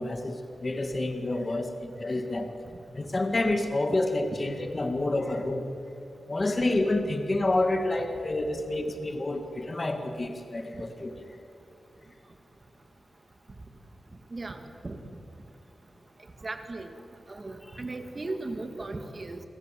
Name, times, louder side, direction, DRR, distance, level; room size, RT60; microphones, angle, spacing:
voice 1, 0.0-2.5 2.9-5.6 6.3-11.1, left 2 dB, 25° left, 5 dB, 2.1 m, -28 dB
voice 2, 14.3-15.0 16.4-16.9 17.3-19.4, right 2 dB, 30° right, 7 dB, 2.2 m, -37 dB
28.5 x 24.5 x 7.8 m, 2.7 s
wide cardioid pair, 165°, 0 cm